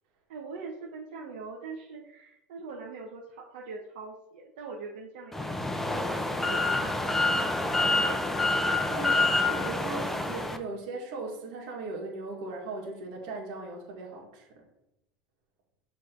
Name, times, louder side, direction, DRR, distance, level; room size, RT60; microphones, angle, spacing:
voice 1, 0.3-5.5 5.9-8.2, right 4 dB, 90° right, -2 dB, 1.0 m, -42 dB
sound 1, 5.3-10.6, left 2 dB, 5° left, 0.6 m, -27 dB
voice 2, 8.9-14.7, right 3 dB, 75° right, -1 dB, 2.0 m, -38 dB
6.4 x 3.4 x 4.5 m, 0.87 s
supercardioid pair, 125°, 4 cm